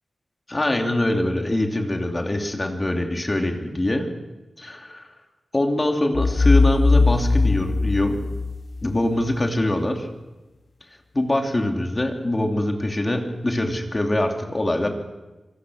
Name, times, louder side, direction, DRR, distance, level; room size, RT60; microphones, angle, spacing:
voice 1, 0.5-4.1 4.6-5.1 5.5-8.2 8.8-10.1 11.1-14.9, left 1 dB, 20° left, 3 dB, 2.8 m, -23 dB
sound 1, 6.1-9.0, left 3 dB, 40° left, 1.0 m, -19 dB
26.5 x 24.5 x 6.4 m, 1.1 s
wide cardioid pair, 175°, 0 cm